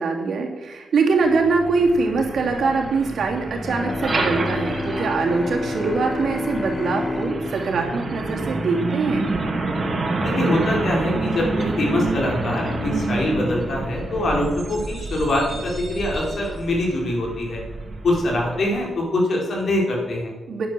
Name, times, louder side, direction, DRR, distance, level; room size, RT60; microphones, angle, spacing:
voice 1, 0.0-9.3 20.5-20.7, right 4 dB, 75° right, 1 dB, 2.8 m, -23 dB
Truck, 1.2-18.9, right 2 dB, 45° right, 2.7 m, -28 dB
Bowed string instrument, 3.6-9.3, left 2 dB, 30° left, 0.7 m, -30 dB
voice 2, 10.2-17.6 18.0-20.3, left 1 dB, 65° left, -1 dB, 4.6 m, -23 dB
9.9 x 9.8 x 6.9 m, 1.2 s
cardioid pair, 75°, 0 cm